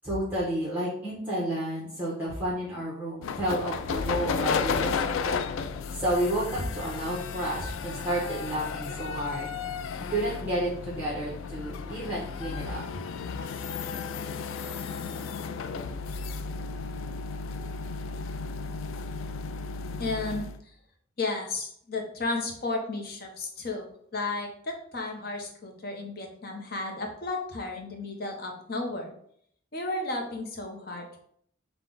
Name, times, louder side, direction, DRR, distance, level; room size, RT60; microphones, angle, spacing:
voice 1, 0.0-5.4 5.9-9.5 10.0-12.8, right 1 dB, 10° right, -9 dB, 1.1 m, -31 dB
sound 1, 3.2-20.6, left 5 dB, 80° left, 0.3 m, -33 dB
voice 2, 20.0-20.5 21.2-23.9 24.1-29.1 29.7-31.2, left 3 dB, 50° left, 2 dB, 0.8 m, -33 dB
5.8 x 2.4 x 3.8 m, 0.66 s
head